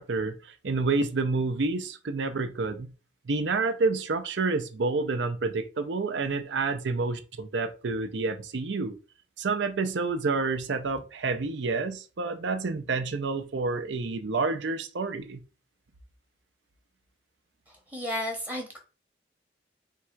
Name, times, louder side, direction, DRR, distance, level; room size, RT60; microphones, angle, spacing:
voice 1, 0.0-2.9 3.3-9.0 9.4-15.4, right 3 dB, 80° right, 0.6 m, -29 dB
voice 2, 17.7-18.8, left 1 dB, 10° right, 0.8 m, -33 dB
3.7 x 2.4 x 4.4 m
head